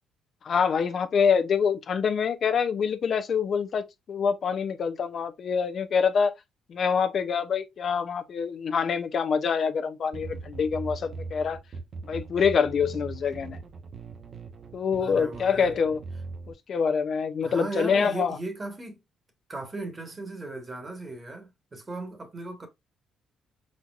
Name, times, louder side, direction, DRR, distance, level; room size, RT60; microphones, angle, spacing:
voice 1, 0.4-6.3 6.7-11.6 12.1-13.6 14.7-16.0 16.7-18.4, left 6 dB, 55° left, 0.5 m, -25 dB
sound 1, 10.1-16.5, right 4 dB, 55° right, 0.8 m, -40 dB
voice 2, 15.0-15.8 17.4-19.0 19.5-22.7, right 2 dB, 25° right, 1.3 m, -37 dB
4.5 x 4.2 x 2.4 m
cardioid pair, 90°, 0 cm